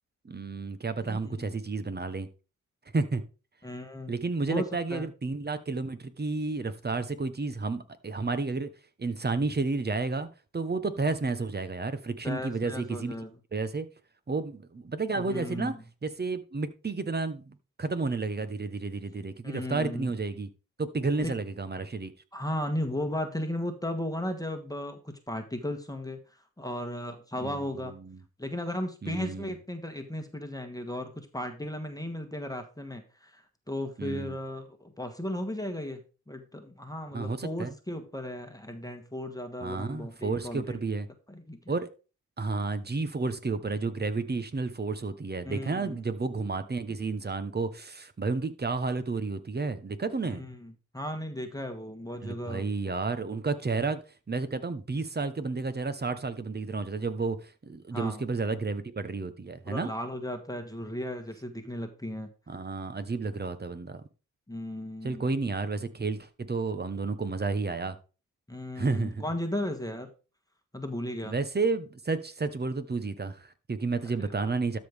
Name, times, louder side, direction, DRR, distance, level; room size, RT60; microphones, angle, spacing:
voice 1, 0.2-2.3 2.9-3.2 4.1-8.7 9.0-10.3 10.5-13.1 13.5-13.9 14.3-15.7 16.0-20.5 20.8-22.1 27.4-28.2 29.0-29.5 34.0-34.4 37.1-37.7 39.6-41.1 41.7-41.9 42.4-50.4 52.2-54.0 54.3-59.9 62.5-64.0 65.0-68.0 68.8-69.2 71.2-74.8, right 3 dB, 30° right, 12 dB, 1.1 m, -31 dB
voice 2, 1.0-1.5 3.6-4.2 4.5-5.1 12.2-13.3 15.1-15.8 19.4-20.2 21.2-21.3 22.3-27.9 28.4-36.0 36.3-40.8 41.3-41.6 45.5-46.0 50.2-52.7 57.9-58.2 59.6-62.3 64.5-65.2 68.5-70.1 70.7-71.4 74.0-74.2, left 1 dB, 10° left, 5 dB, 1.4 m, -35 dB
12.5 x 5.3 x 3.6 m, 0.34 s
cardioid pair, 65°, 32 cm